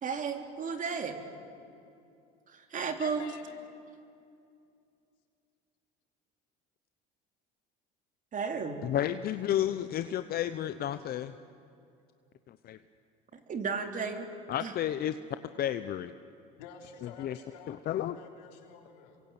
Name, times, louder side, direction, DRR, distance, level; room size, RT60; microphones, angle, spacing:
voice 1, 0.0-1.2 2.5-3.3 8.3-8.8 13.5-14.3 14.6-14.7, right 5 dB, 40° right, 5 dB, 3.2 m, -33 dB
voice 2, 3.0-3.6 16.6-19.2, left 7 dB, 90° left, 3 dB, 3.5 m, -49 dB
voice 3, 8.8-11.3 12.5-12.8 14.5-15.2 15.6-16.1 17.0-17.4 17.7-18.1, left 11 dB, 50° left, 11 dB, 0.8 m, -32 dB
27.5 x 23.0 x 8.9 m, 2.5 s
supercardioid pair, 100°, 21 cm